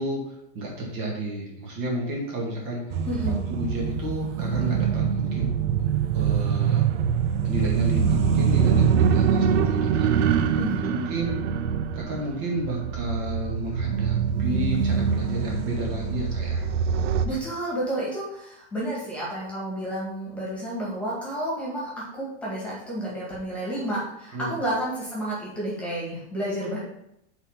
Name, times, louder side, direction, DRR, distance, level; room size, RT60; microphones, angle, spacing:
voice 1, 0.0-3.0 3.2-5.5 5.8-6.9 7.4-10.6 10.8-11.4 11.9-16.7 17.3-17.4 24.3-24.5, right 1 dB, 45° right, -2 dB, 1.9 m, -32 dB
sound 1, 2.9-17.3, right 7 dB, 85° right, 0.7 m, -24 dB
voice 2, 3.1-3.4 10.6-11.0 17.2-21.9 22.2-26.8, right 1 dB, 5° left, -6 dB, 1.9 m, -30 dB
5.8 x 4.0 x 5.6 m, 0.80 s
supercardioid pair, 165°, 34 cm